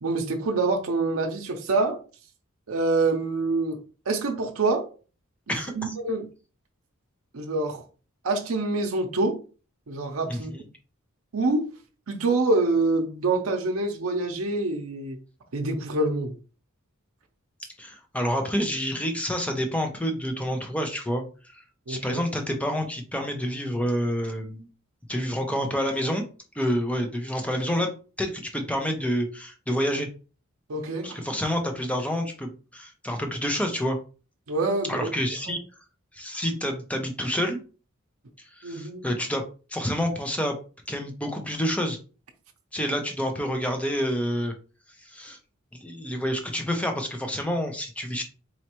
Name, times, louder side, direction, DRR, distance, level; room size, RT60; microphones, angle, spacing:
voice 1, 0.0-2.0 2.7-3.8 4.1-4.9 5.5-6.3 7.3-7.8 8.2-9.4 9.9-10.5 11.3-11.7 12.1-15.2 15.5-16.3 21.9-22.2 30.7-31.2 34.5-35.1 35.4-35.6 38.6-39.1, right 3 dB, 80° right, 0.7 m, -26 dB
voice 2, 5.5-5.9 10.3-10.6 17.8-21.6 21.9-24.7 25.1-26.2 26.5-27.9 28.2-30.1 31.0-34.0 34.9-35.6 36.1-37.6 38.6-39.4 39.7-40.6 40.9-42.0 42.7-44.5 45.0-45.4 45.7-48.2, equal, 5° left, 0.6 m, -28 dB
4.3 x 3.1 x 3.0 m
head